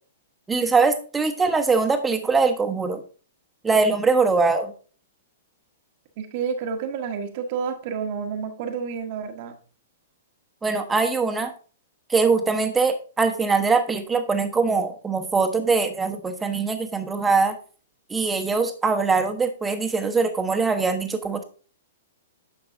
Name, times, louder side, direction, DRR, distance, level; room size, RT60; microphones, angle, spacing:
voice 1, 0.5-3.0 3.6-4.7 10.6-11.5 12.1-17.6 18.1-21.4, right 4 dB, 10° right, 7 dB, 1.2 m, -22 dB
voice 2, 6.2-9.5, right 6 dB, 50° right, 4 dB, 1.2 m, -29 dB
10.0 x 6.8 x 2.7 m, 0.39 s
figure-of-eight pair, 110°, 0 cm